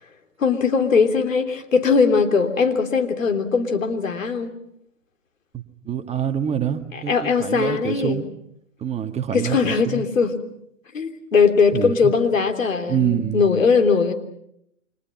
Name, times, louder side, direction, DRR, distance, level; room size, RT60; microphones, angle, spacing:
voice 1, 0.4-4.5 7.1-8.2 9.3-10.4 10.9-14.1, left 5 dB, 80° left, 6 dB, 3.4 m, -20 dB
voice 2, 5.5-8.3 8.8-10.0 11.7-12.1 12.9-13.4, right 9 dB, 15° right, 6 dB, 2.0 m, -26 dB
30.0 x 25.5 x 5.9 m, 0.74 s
hypercardioid pair, 115°, 39 cm